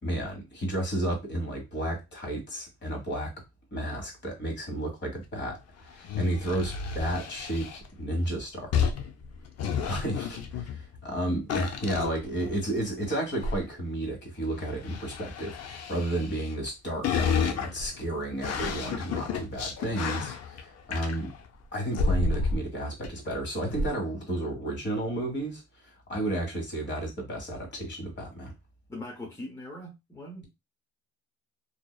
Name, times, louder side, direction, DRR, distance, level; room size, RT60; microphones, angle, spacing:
voice 1, 0.0-3.3 3.7-5.6 5.9-8.9 9.9-21.3 21.7-25.6 26.1-28.5, right 1 dB, 35° left, 1.3 m, -32 dB
sound 1, 5.9-7.9 8.7-11.1 11.5-12.8 13.3-13.6 14.6-16.7 17.0-21.5 21.9-22.7 23.0-23.1 23.6-23.9, left 5 dB, 55° left, 0.5 m, -31 dB
voice 2, 28.9-30.5, left 1 dB, 10° left, 0.7 m, -41 dB
2.6 x 2.0 x 2.3 m
cardioid pair, 90°, 30 cm